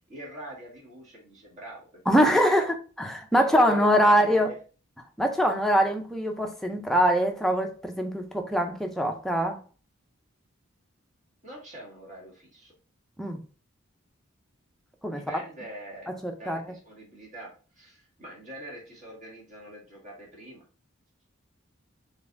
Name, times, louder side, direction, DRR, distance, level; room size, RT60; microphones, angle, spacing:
voice 1, 0.1-2.0 2.4-2.5 3.3-4.6 11.4-12.7 15.1-20.6, right 1 dB, 35° right, 1.7 m, -43 dB
voice 2, 2.1-4.5 5.2-9.6 13.2-13.4 15.0-15.2 16.2-16.6, equal, ahead, 0.4 m, -23 dB
4.0 x 3.4 x 2.4 m
head